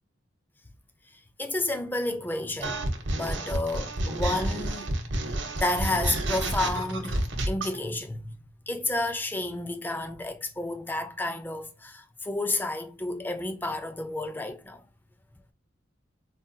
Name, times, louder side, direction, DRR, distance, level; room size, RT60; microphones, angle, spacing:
voice 1, 1.4-2.8 3.1-5.3 5.6-8.4 8.7-14.8, left 2 dB, 10° left, 0.4 m, -31 dB
sound 1, 2.6-7.8, right 1 dB, 70° right, 0.8 m, -30 dB
3.8 x 2.6 x 2.2 m
head